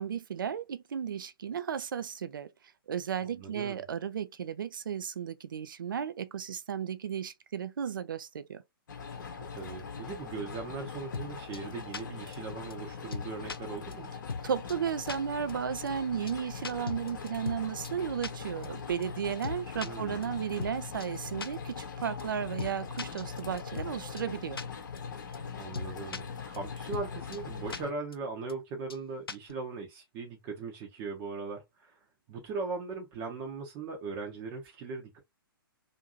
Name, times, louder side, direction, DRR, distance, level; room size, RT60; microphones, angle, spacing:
voice 1, 0.0-2.5 2.9-8.6 14.4-24.6, right 8 dB, 60° right, 0.4 m, -34 dB
voice 2, 3.3-3.8 9.6-14.1 19.8-20.5 25.6-32.0 32.3-35.2, right 4 dB, 25° right, 0.7 m, -39 dB
sound 1, 8.9-27.9, left 6 dB, 55° left, 0.8 m, -41 dB
sound 2, 11.1-11.3 11.5-11.6 11.9-12.0 12.3-12.4 12.7-12.8 13.1-13.6 13.9-14.0 14.3-14.4 14.7-14.8 15.1-15.2 15.5-15.6 15.9-16.0 16.3-16.4 16.6-17.6 17.8-17.9 18.2-18.3 18.6-18.7 19.0-19.1 19.4-19.9 20.2-20.3 20.6-20.7 21.0-21.1 21.4-21.5 21.8-21.9 22.2-22.3 22.6-22.7 23.0-23.9 24.2-24.3 24.6-24.7 25.0-25.1 25.3-25.4 25.7-26.2 26.5-26.6 26.9-27.1 27.3-27.4 27.7-27.8 28.1-28.2 28.5-28.6 28.9-29.0 29.3-29.5, left 5 dB, 75° left, 0.5 m, -37 dB
2.6 x 2.6 x 2.5 m
figure-of-eight pair, 125°, 12 cm